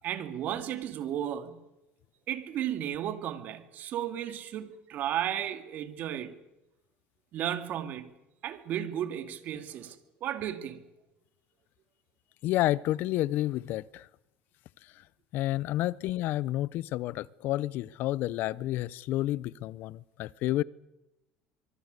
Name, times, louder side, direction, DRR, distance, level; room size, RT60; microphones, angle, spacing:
voice 1, 0.0-1.7 2.3-6.3 7.3-8.1 8.4-10.0 10.2-10.8, right 10 dB, 50° right, 2.5 m, -34 dB
voice 2, 12.4-14.1 15.0-15.1 15.3-20.6, left 15 dB, 60° left, 0.8 m, -30 dB
24.0 x 23.5 x 6.7 m
cardioid pair, 130°, 4 cm